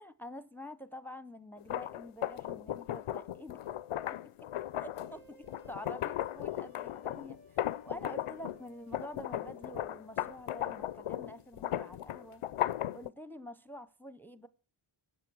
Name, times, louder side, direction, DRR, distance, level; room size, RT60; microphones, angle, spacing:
voice 1, 0.0-3.6 4.1-4.5 4.8-12.4 12.9-14.5, left 1 dB, 5° left, 0.8 m, -47 dB
sound 1, 1.6-8.6 8.9-13.1, left 12 dB, 90° left, 0.6 m, -36 dB
sound 2, 4.9-11.1, right 1 dB, 75° right, 7.1 m, -61 dB
16.0 x 9.4 x 6.2 m
cardioid pair, 55°, 50 cm